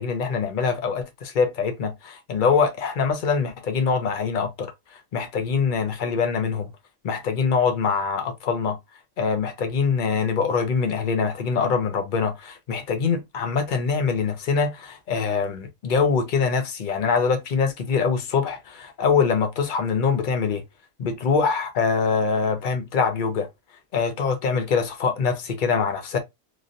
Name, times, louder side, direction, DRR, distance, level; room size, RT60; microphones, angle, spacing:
voice 1, 0.0-4.7 5.1-6.7 7.0-8.8 9.2-20.6 21.0-23.5 23.9-26.2, left 5 dB, 50° left, 0.8 m, -24 dB
3.2 x 2.5 x 2.5 m
omnidirectional pair, 1.3 m